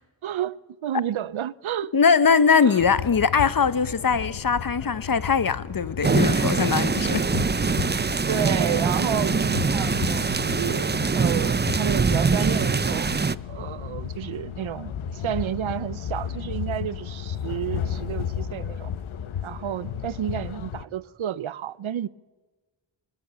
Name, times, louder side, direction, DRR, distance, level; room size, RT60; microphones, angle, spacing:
voice 1, 0.2-1.9 2.6-2.8 6.7-6.8 8.3-13.1 13.4-18.9 19.4-22.1, right 10 dB, 85° right, 0.7 m, -31 dB
voice 2, 1.9-7.2, left 5 dB, 45° left, 1.0 m, -21 dB
sound 1, 2.8-20.9, left 8 dB, 90° left, 1.0 m, -34 dB
sound 2, 6.0-13.4, right 4 dB, 20° right, 0.6 m, -23 dB
26.0 x 19.0 x 7.0 m
cardioid pair, 60°, 47 cm